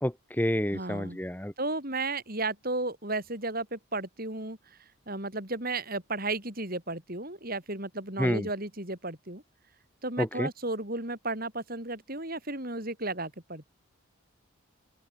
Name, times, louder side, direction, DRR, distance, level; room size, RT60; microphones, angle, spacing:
voice 1, 0.0-1.5 8.2-8.5 10.2-10.5, equal, 10° left, 1.6 m, -29 dB
voice 2, 0.7-1.2 1.6-9.4 10.0-13.6, right 2 dB, 40° right, 5.5 m, -34 dB
open air
head